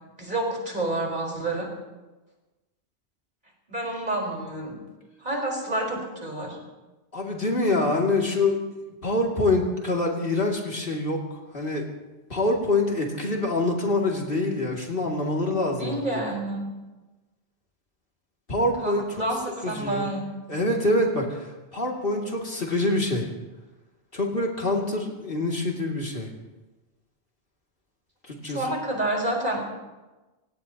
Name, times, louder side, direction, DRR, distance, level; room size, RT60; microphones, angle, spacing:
voice 1, 0.2-1.7 3.7-4.8 5.2-6.6 15.6-16.7 18.8-18.9 19.2-20.3 28.4-29.6, right 1 dB, 45° right, -1 dB, 4.6 m, -29 dB
voice 2, 7.1-11.2 11.5-11.9 12.3-16.1 18.5-19.2 19.6-20.0 20.5-23.3 24.1-26.3 28.3-28.6, left 2 dB, 55° left, -1 dB, 2.8 m, -25 dB
27.5 x 17.5 x 2.9 m, 1.1 s
omnidirectional pair, 1.1 m